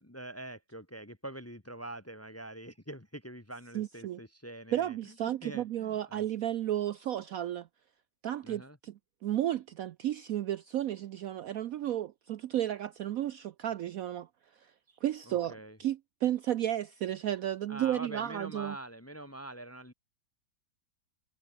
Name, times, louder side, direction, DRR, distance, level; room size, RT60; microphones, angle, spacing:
voice 1, 0.0-5.1 5.4-6.2 8.4-8.8 15.3-15.8 17.7-19.9, right 1 dB, 10° left, 1.0 m, -45 dB
voice 2, 3.7-4.2 4.7-7.7 8.2-8.9 9.2-14.3 14.6-14.7 15.0-18.8, right 12 dB, 65° right, 0.9 m, -33 dB
omnidirectional pair, 1.9 m